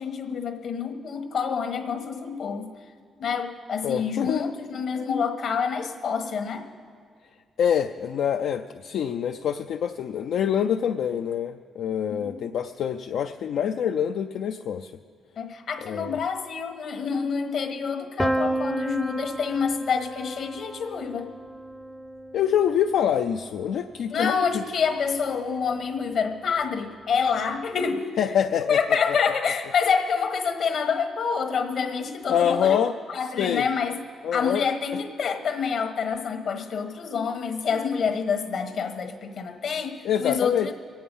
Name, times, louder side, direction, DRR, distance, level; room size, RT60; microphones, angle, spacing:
voice 1, 0.0-2.7 3.2-6.6 12.1-12.4 15.4-21.3 24.1-28.1 28.6-32.8 33.1-34.0 34.3-40.7, left 6 dB, 60° left, 6 dB, 1.3 m, -27 dB
voice 2, 3.8-4.5 7.6-14.9 15.8-16.2 22.3-24.6 28.2-28.8 32.3-32.9 33.4-33.7 34.2-34.6 40.0-40.7, left 8 dB, 80° left, 5 dB, 0.4 m, -25 dB
Piano, 18.2-24.0, right 1 dB, ahead, 0.5 m, -32 dB
23.0 x 8.7 x 5.4 m, 2.1 s
cardioid pair, 130°, 0 cm